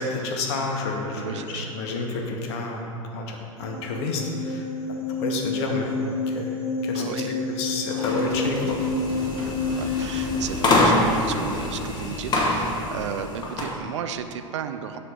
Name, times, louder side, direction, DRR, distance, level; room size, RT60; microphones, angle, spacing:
voice 1, 0.0-2.8 3.1-4.7 5.1-6.0 6.3-6.5 6.8-8.8, left 3 dB, 50° left, 1 dB, 1.0 m, -29 dB
voice 2, 1.2-1.7 6.9-7.4 9.7-15.0, right 8 dB, 60° right, 9 dB, 0.4 m, -34 dB
sound 1, 3.6-10.4, left 4 dB, 80° left, 0.9 m, -29 dB
sound 2, 7.9-13.8, left 2 dB, 25° left, 1.0 m, -25 dB
Squeak, 7.9-13.3, right 1 dB, 35° right, 1.3 m, -43 dB
7.6 x 3.3 x 5.7 m, 2.6 s
figure-of-eight pair, 85°, 17 cm